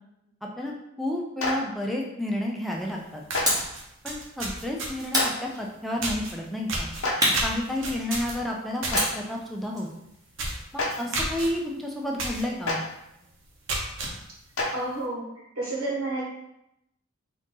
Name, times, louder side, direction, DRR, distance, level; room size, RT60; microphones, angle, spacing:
voice 1, 1.0-3.2 4.0-6.9 7.4-9.9 10.7-12.8, left 1 dB, ahead, -1 dB, 0.4 m, -31 dB
Clapping, 1.4-1.5 3.3-3.4 5.1-5.3 7.0-7.1 8.9-9.0 10.7-10.9 12.6-12.7 14.5-14.7, left 2 dB, 85° left, 0.9 m, -26 dB
sound 1, 2.8-2.9 3.2-5.2 6.0-6.3 6.7-9.0 9.4-9.6 9.9-10.0 10.3-10.6 11.1-11.5 12.2-12.4 12.9-13.0 13.5-14.1, right 2 dB, 60° right, 0.8 m, -31 dB
sound 2, 3.5-3.8 5.1-6.0 7.2-8.3 8.9-11.2, equal, 15° right, 0.9 m, -29 dB
voice 2, 14.7-15.3 15.5-16.2, right 2 dB, 85° right, -3 dB, 1.2 m, -30 dB
3.8 x 2.6 x 3.7 m, 0.84 s
head